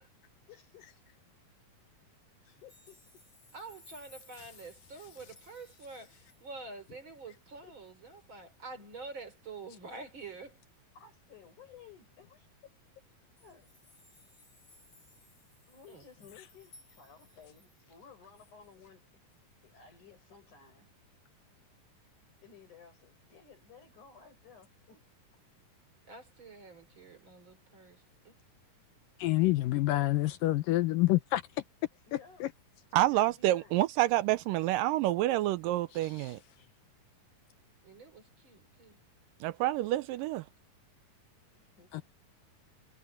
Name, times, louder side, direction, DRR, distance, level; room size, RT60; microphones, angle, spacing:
voice 1, 0.5-0.9 2.5-3.2 10.9-12.8 13.4-13.9 15.7-19.2 19.6-20.9 22.4-25.0 32.1-32.4 33.0-33.8 41.5-41.9, left 6 dB, 60° left, 7.9 m, -56 dB
sound 1, 2.5-7.0 7.4-7.5 7.9-8.0 8.3-8.8 9.9-10.1 11.8-11.9 12.1-12.2 13.1-18.0 18.4-18.5, left 3 dB, 40° left, 8.2 m, -61 dB
voice 2, 3.5-10.6 15.9-16.0 26.1-28.3 37.8-39.0, right 3 dB, 35° right, 4.0 m, -47 dB
voice 3, 29.2-31.4 32.1-32.5 36.2-36.3 41.9-42.0, left 17 dB, 75° left, 2.4 m, -28 dB
voice 4, 32.9-36.4 39.4-40.4, right 15 dB, 80° right, 2.2 m, -28 dB
omnidirectional pair, 4.0 m